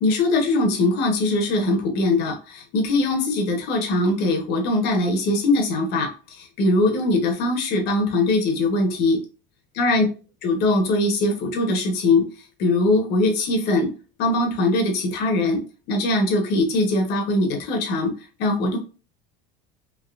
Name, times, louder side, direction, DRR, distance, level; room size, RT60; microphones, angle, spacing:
voice 1, 0.0-6.1 6.4-9.2 9.8-10.0 10.4-12.2 12.6-13.9 14.2-15.6 15.9-18.1 18.4-18.8, left 2 dB, 55° left, 3 dB, 1.0 m, -21 dB
3.6 x 2.8 x 2.3 m, 0.36 s
cardioid pair, 155°, 21 cm